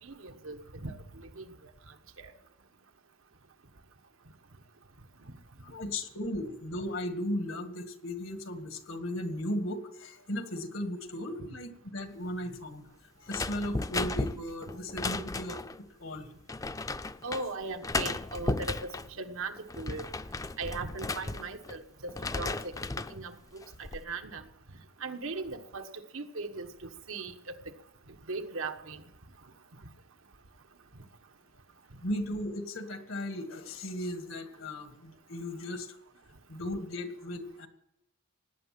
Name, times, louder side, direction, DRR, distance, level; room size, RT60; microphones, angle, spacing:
voice 1, 0.0-1.5 2.2-2.3 17.2-20.0 20.6-22.7 23.1-24.4 25.0-25.9 26.1-27.7 28.3-29.0, right 3 dB, 90° right, 7 dB, 1.4 m, -39 dB
voice 2, 5.6-12.8 13.2-15.6 16.0-16.3 32.0-35.9 36.5-37.7, left 1 dB, 80° left, 7 dB, 1.8 m, -36 dB
sound 1, 13.3-15.8 16.5-17.4 17.8-19.1 19.6-21.8 22.1-23.2 23.6-24.0, left 3 dB, 15° left, 0.4 m, -35 dB
18.0 x 9.5 x 7.6 m, 0.83 s
head